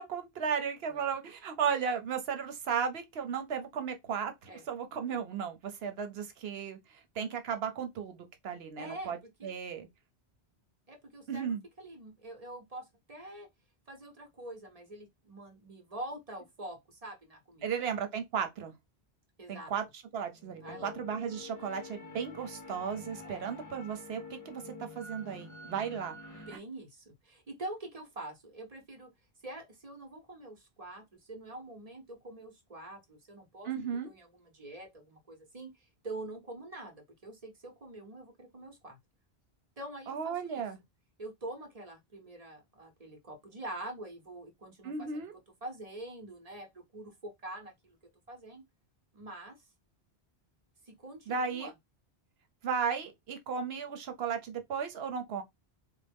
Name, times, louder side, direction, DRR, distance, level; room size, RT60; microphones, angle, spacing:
voice 1, 0.0-6.8 7.2-9.2 9.4-9.9 11.3-11.6 17.6-18.7 19.5-19.8 20.1-26.4 33.7-34.1 40.1-40.8 44.8-45.3 51.3-51.7 52.6-55.4, right 6 dB, 75° right, 0.9 m, -35 dB
voice 2, 8.8-9.1 9.4-9.5 10.9-11.5 11.8-13.5 13.9-18.0 19.4-19.7 20.6-21.0 23.2-23.5 26.3-29.1 29.4-33.7 34.0-39.0 39.8-40.6 41.2-45.3 45.6-48.0 48.3-48.6 49.1-49.6 50.8-51.7, right 1 dB, 40° right, 0.9 m, -45 dB
sound 1, 20.3-26.6, left 3 dB, 25° left, 0.5 m, -48 dB
4.1 x 2.1 x 3.4 m
omnidirectional pair, 1.0 m